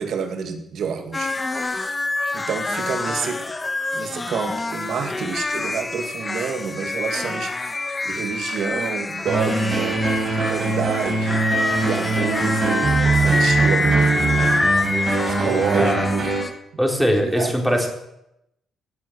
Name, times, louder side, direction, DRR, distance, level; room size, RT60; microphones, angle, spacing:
voice 1, 0.0-1.9 2.3-3.4 3.9-16.3 17.1-17.9, right 6 dB, 65° right, 6 dB, 2.1 m, -29 dB
sound 1, 1.1-16.5, left 3 dB, 25° left, 1.4 m, -26 dB
sound 2, 9.3-16.4, right 3 dB, 45° right, 4.5 m, -22 dB
voice 2, 15.5-16.1 16.8-17.9, equal, ahead, 1 dB, 3.9 m, -21 dB
17.5 x 8.3 x 8.0 m, 0.83 s
cardioid pair, 90°, 0 cm